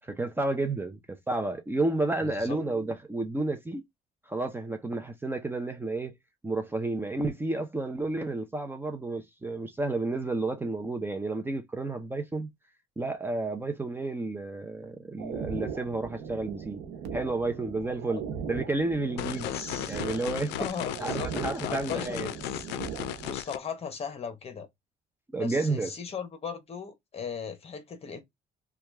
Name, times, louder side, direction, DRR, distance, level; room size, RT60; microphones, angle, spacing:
voice 1, 0.0-3.8 4.3-6.1 6.4-12.5 13.0-16.8 17.1-19.5 19.9-20.6 21.0-22.3 25.3-25.9, right 2 dB, 15° right, 0.5 m, -31 dB
voice 2, 2.2-2.6 18.1-18.2 19.4-20.0 20.6-21.3 21.6-22.7 23.2-24.7 25.4-28.2, left 6 dB, 35° left, 1.0 m, -38 dB
sound 1, 15.2-23.3, right 7 dB, 85° right, 0.8 m, -39 dB
sound 2, 19.2-23.6, left 14 dB, 85° left, 0.4 m, -36 dB
2.9 x 2.3 x 3.3 m
cardioid pair, 110°, 17 cm